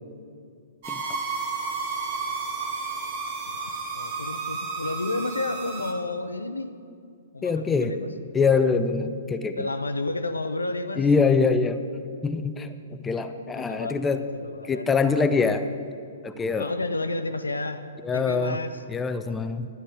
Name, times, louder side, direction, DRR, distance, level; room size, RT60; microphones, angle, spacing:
sound 1, 0.8-5.9, right 4 dB, 45° right, 1.7 m, -32 dB
voice 1, 3.9-6.7 7.3-8.1 9.6-11.1 13.5-14.0 14.4-14.8 16.6-17.8 18.1-18.8, left 2 dB, 85° left, 10 dB, 0.6 m, -31 dB
voice 2, 7.4-8.0 8.3-9.7 11.0-11.8 12.2-14.3 14.7-15.7 16.2-16.7 18.0-18.6 18.9-19.7, left 5 dB, 15° left, 9 dB, 0.5 m, -24 dB
12.0 x 9.8 x 4.9 m, 2.4 s
figure-of-eight pair, 115°, 0 cm